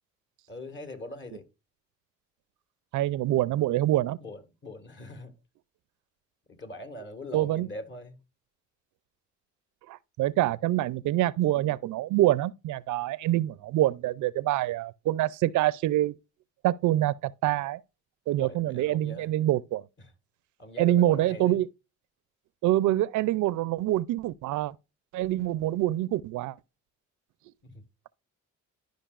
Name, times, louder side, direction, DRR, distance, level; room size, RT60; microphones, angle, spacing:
voice 1, 0.5-1.5 4.2-5.3 6.5-8.2 18.4-19.3 20.6-21.6 27.6-27.7, left 1 dB, 40° left, 1.8 m, -41 dB
voice 2, 2.9-4.2 7.3-7.7 9.9-16.1 16.6-17.8 18.3-19.8 20.8-21.7 22.6-24.7 25.1-26.5, right 14 dB, 75° right, 0.5 m, -26 dB
12.0 x 5.2 x 2.4 m
cardioid pair, 90°, 30 cm